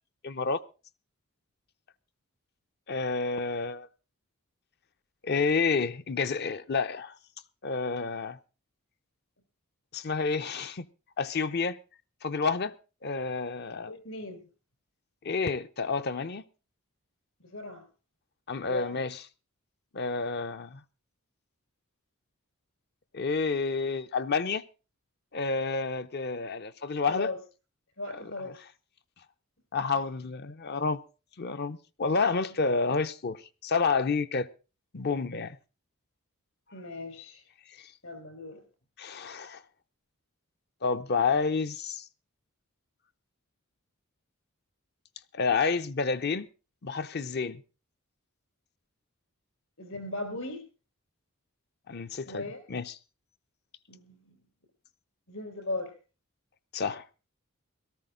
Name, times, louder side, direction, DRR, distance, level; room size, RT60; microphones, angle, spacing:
voice 1, 0.2-0.6 2.9-3.9 5.2-7.1 7.6-8.4 9.9-10.9 11.2-11.8 12.2-12.7 13.0-13.9 15.2-16.4 18.5-19.3 19.9-20.8 23.1-24.6 25.3-27.3 28.1-28.7 29.7-31.0 31.4-34.5 34.9-35.6 39.0-39.6 40.8-42.1 45.3-46.5 46.8-47.6 51.9-53.0 56.7-57.0, left 4 dB, 45° left, 0.6 m, -29 dB
voice 2, 13.9-14.4 17.4-17.9 18.6-19.0 27.1-27.4 28.0-28.5 29.8-30.0 36.7-37.4 38.0-38.6 49.8-50.6 52.3-52.6 53.9-54.4 55.3-55.9, left 2 dB, 65° left, 4.4 m, -38 dB
18.0 x 13.5 x 3.8 m
head